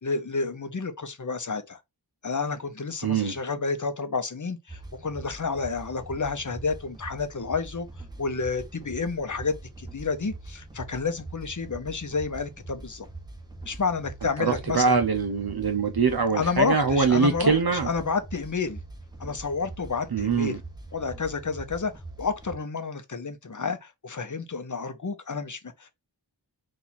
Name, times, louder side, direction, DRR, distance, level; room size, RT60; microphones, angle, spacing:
voice 1, 0.0-1.8 2.2-7.9 8.2-13.1 13.6-15.0 16.3-18.8 19.2-20.6 20.9-21.9 22.2-25.9, left 4 dB, 45° left, 0.8 m, -30 dB
voice 2, 3.0-3.4 14.4-17.9 20.1-20.6, right 5 dB, 60° right, 0.7 m, -23 dB
sound 1, 4.7-22.6, right 2 dB, 10° right, 1.2 m, -43 dB
4.3 x 2.6 x 4.1 m
wide cardioid pair, 45°, 43 cm